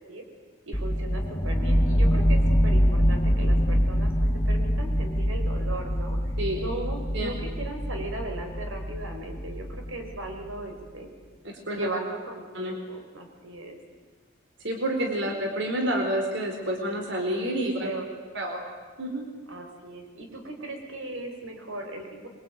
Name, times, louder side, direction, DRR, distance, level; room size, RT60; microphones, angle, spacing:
sound 1, 0.7-10.5, equal, 20° left, 2.1 m, -25 dB
voice 1, 0.7-4.1 4.5-6.2 6.5-11.1 11.7-13.8 15.3-15.4 17.8-18.1 19.5-22.3, right 2 dB, 90° right, 3 dB, 5.2 m, -37 dB
voice 2, 11.4-11.9 12.5-12.7 14.6-17.9 18.3-18.6 19.0-19.3, right 1 dB, 65° right, 3 dB, 4.6 m, -29 dB
26.0 x 23.5 x 9.4 m, 1.5 s
head